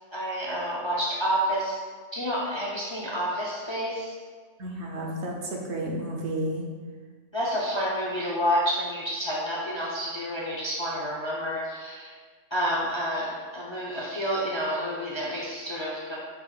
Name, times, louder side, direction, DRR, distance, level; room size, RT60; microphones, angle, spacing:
voice 1, 0.1-1.8 2.1-4.2 7.3-12.1 12.5-16.2, equal, 40° left, -4 dB, 0.4 m, -29 dB
voice 2, 4.6-6.7, right 1 dB, 70° right, 0 dB, 0.9 m, -31 dB
5.4 x 2.2 x 3.9 m, 1.5 s
omnidirectional pair, 1.3 m